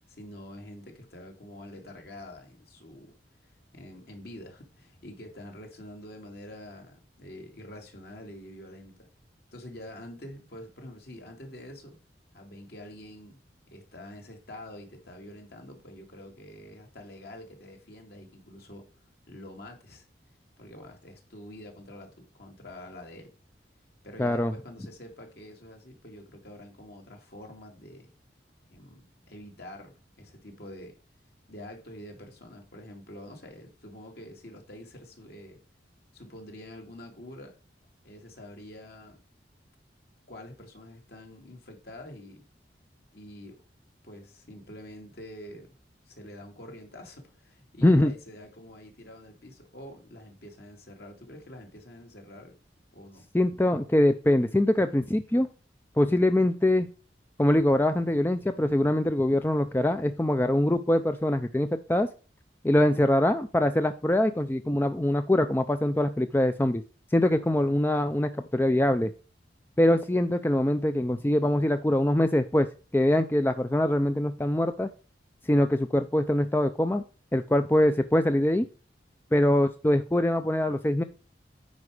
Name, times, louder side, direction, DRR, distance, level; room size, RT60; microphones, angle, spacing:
voice 1, 0.1-3.1 3.7-8.9 9.5-12.0 12.3-13.4 13.7-18.9 19.3-20.0 20.6-23.3 24.0-28.1 28.7-30.9 31.5-35.6 36.1-37.5 38.0-39.2 40.3-42.4 43.1-43.6 44.0-45.7 46.1-52.5 52.9-53.3, left 1 dB, 60° left, 2.3 m, -46 dB
voice 2, 24.2-24.5 47.8-48.1 53.3-55.5 56.0-56.9 57.4-62.1 62.6-66.8 67.1-69.1 69.8-72.7 72.9-74.9 75.5-77.0 77.3-78.7 79.3-81.0, left 1 dB, 10° left, 0.4 m, -23 dB
9.5 x 4.9 x 4.8 m
head